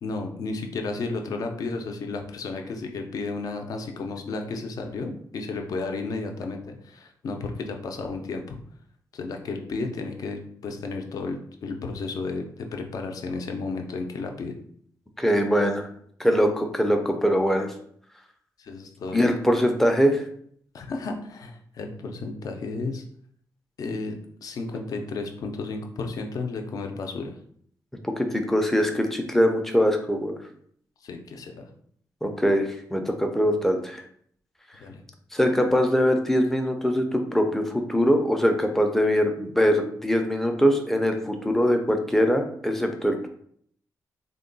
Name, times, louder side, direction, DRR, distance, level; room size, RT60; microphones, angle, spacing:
voice 1, 0.0-8.6 9.1-14.5 18.6-19.3 20.7-23.0 23.8-27.3 31.0-31.7 34.8-35.0, left 3 dB, 60° left, 4 dB, 0.5 m, -33 dB
voice 2, 15.2-15.9 16.2-17.7 19.1-20.2 28.0-30.4 32.2-34.0 35.3-43.3, equal, 5° left, 4 dB, 0.4 m, -22 dB
3.6 x 2.2 x 3.8 m, 0.63 s
wide cardioid pair, 165°, 7 cm